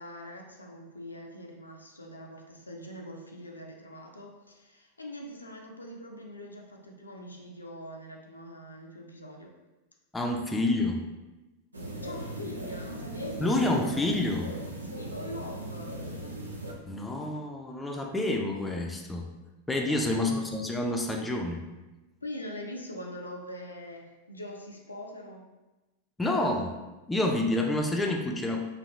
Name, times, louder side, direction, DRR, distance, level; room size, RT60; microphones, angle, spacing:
voice 1, 0.0-9.5 12.0-13.6 14.8-16.0 19.9-20.3 22.2-25.5, left 1 dB, 80° left, 1 dB, 0.4 m, -43 dB
voice 2, 10.1-11.0 13.4-14.5 16.9-19.3 19.7-21.7 26.2-26.8 27.1-28.6, left 2 dB, 10° left, 1 dB, 0.4 m, -28 dB
sound 1, 11.7-16.7, right 1 dB, 80° right, 0.4 m, -38 dB
3.2 x 2.3 x 2.6 m, 1.1 s
figure-of-eight pair, 90°, 0 cm